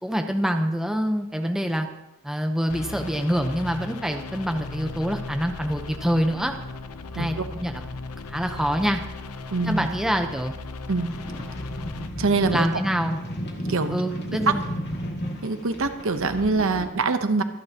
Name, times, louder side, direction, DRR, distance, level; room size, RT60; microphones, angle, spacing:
voice 1, 0.0-1.9 2.2-6.5 7.1-7.8 8.3-9.0 9.6-10.5 12.5-13.2 13.9-14.6, equal, ahead, 4 dB, 0.8 m, -25 dB
sound 1, 2.7-12.1, left 3 dB, 85° left, 0.8 m, -37 dB
voice 2, 9.5-9.9 10.9-11.1 12.2-12.7 13.7-14.0 14.5-14.6 15.4-17.4, right 3 dB, 60° right, 8 dB, 0.9 m, -24 dB
sound 2, 11.0-16.8, equal, 50° left, 2.4 m, -33 dB
25.5 x 10.5 x 2.9 m, 0.91 s
head